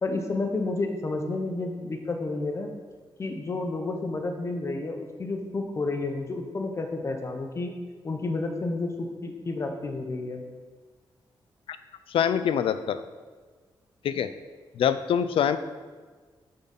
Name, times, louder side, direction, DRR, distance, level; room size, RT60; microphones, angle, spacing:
voice 1, 0.0-2.7 3.2-7.7 8.0-10.4, left 3 dB, 30° left, 4 dB, 0.7 m, -30 dB
voice 2, 12.1-13.0 14.0-14.3 14.8-15.6, left 8 dB, 90° left, 12 dB, 0.4 m, -24 dB
7.2 x 3.9 x 5.7 m, 1.4 s
wide cardioid pair, 170°, 9 cm